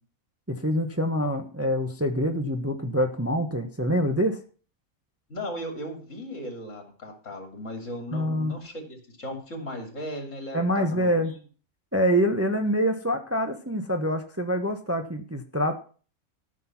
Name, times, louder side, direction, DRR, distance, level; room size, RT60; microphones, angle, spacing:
voice 1, 0.5-4.4 8.1-8.6 10.5-11.3 11.9-15.8, equal, 10° right, 5 dB, 1.0 m, -25 dB
voice 2, 5.3-11.4, left 1 dB, 60° left, 3 dB, 3.3 m, -37 dB
14.0 x 6.4 x 6.0 m, 0.39 s
omnidirectional pair, 1.5 m